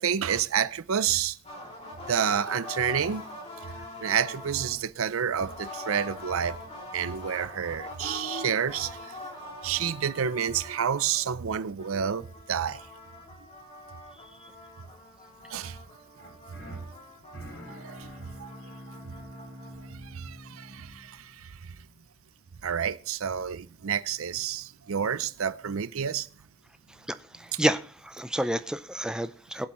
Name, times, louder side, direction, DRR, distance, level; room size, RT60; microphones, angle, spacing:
voice 1, 0.0-1.4 2.1-3.2 4.0-6.6 6.9-9.1 9.6-12.8 15.5-15.8 17.7-18.1 18.4-18.5 20.1-21.5 22.6-26.3, right 8 dB, 85° right, 0.6 m, -29 dB
sound 1, 1.4-4.8 5.3-11.5 11.8-19.9, left 2 dB, 30° left, 2.8 m, -44 dB
sound 2, 16.1-22.3, left 1 dB, 85° left, 6.2 m, -47 dB
voice 2, 27.4-29.7, right 1 dB, 5° right, 0.5 m, -29 dB
22.0 x 7.8 x 3.1 m
head